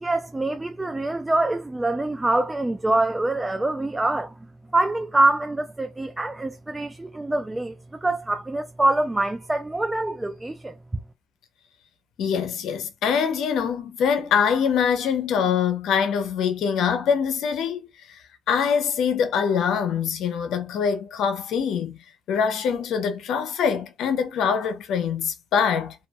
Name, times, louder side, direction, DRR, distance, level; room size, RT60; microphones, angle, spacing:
voice 1, 0.0-4.3 4.7-7.7 8.0-10.7, right 2 dB, 15° right, 0.3 m, -24 dB
voice 2, 12.2-18.2 18.5-22.0 22.3-25.9, left 7 dB, 80° left, 0.6 m, -24 dB
2.3 x 2.2 x 2.8 m
cardioid pair, 90°, 0 cm